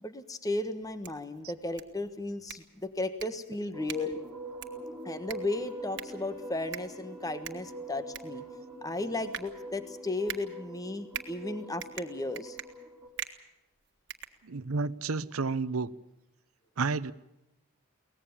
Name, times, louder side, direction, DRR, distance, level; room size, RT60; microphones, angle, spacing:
voice 1, 0.0-4.2 5.0-8.4 8.8-12.6, left 2 dB, 15° left, 10 dB, 1.3 m, -35 dB
sound 1, 0.8-14.9, right 10 dB, 55° right, 1.7 m, -45 dB
sound 2, 3.7-13.1, right 1 dB, 10° right, 3.4 m, -44 dB
Bowed string instrument, 5.4-10.1, right 1 dB, 45° left, 5.9 m, -56 dB
voice 2, 14.4-15.9 16.8-17.1, right 4 dB, 85° right, 17 dB, 0.8 m, -31 dB
23.0 x 19.0 x 7.2 m, 0.90 s
head